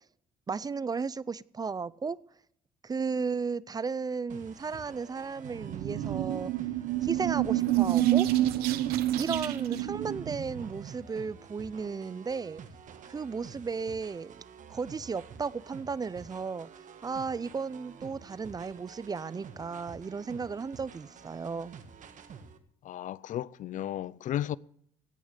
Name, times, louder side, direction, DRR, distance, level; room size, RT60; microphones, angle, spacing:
voice 1, 0.5-2.2 2.8-6.5 7.0-8.3 9.2-12.6 13.0-14.3 14.7-16.7 17.0-21.8, right 5 dB, 25° right, 0.5 m, -34 dB
sound 1, 4.3-22.6, right 6 dB, 55° right, 1.6 m, -49 dB
sound 2, 5.4-10.9, right 14 dB, 90° right, 1.0 m, -28 dB
voice 2, 22.8-24.6, left 12 dB, 60° left, 0.4 m, -34 dB
17.0 x 6.3 x 8.2 m
cardioid pair, 90°, 15 cm